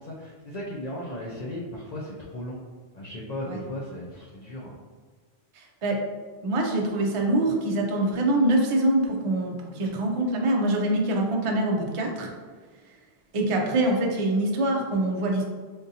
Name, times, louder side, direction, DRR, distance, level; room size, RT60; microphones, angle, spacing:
voice 1, 0.0-2.6 2.9-4.8, left 1 dB, 55° left, -4 dB, 0.5 m, -36 dB
voice 2, 5.5-6.0 6.4-12.3 13.3-15.4, right 1 dB, 45° right, 0 dB, 0.4 m, -24 dB
3.7 x 2.6 x 2.7 m, 1.5 s
omnidirectional pair, 1.0 m